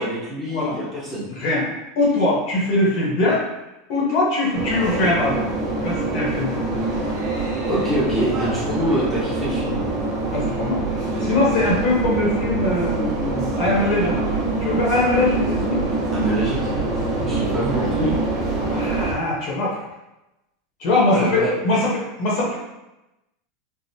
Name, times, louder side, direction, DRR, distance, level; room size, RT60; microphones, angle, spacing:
voice 1, 0.0-1.3 7.6-9.8 16.1-18.1 21.1-21.6, equal, ahead, -11 dB, 0.8 m, -25 dB
voice 2, 1.3-1.7 2.0-3.4 3.9-5.5 5.7-6.7 10.3-10.8 11.2-14.2 14.6-15.8 18.6-19.8 20.8-22.5, left 2 dB, 50° left, -4 dB, 0.9 m, -21 dB
sound 1, 4.5-19.1, right 3 dB, 40° right, 0.9 m, -25 dB
3.5 x 2.0 x 2.7 m, 0.95 s
supercardioid pair, 160°, 0 cm